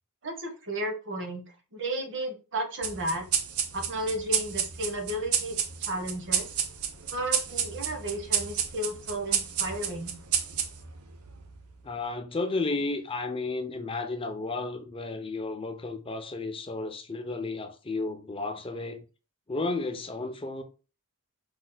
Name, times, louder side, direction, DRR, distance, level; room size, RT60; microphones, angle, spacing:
voice 1, 0.2-1.4 1.7-3.3 3.7-5.6 5.9-6.5 7.1-10.2, right 1 dB, 55° right, 1.3 m, -33 dB
sound 1, 2.8-11.7, right 8 dB, 75° right, 0.8 m, -31 dB
voice 2, 11.8-19.0 19.5-20.6, left 3 dB, 25° left, 0.6 m, -33 dB
5.2 x 4.1 x 2.2 m
head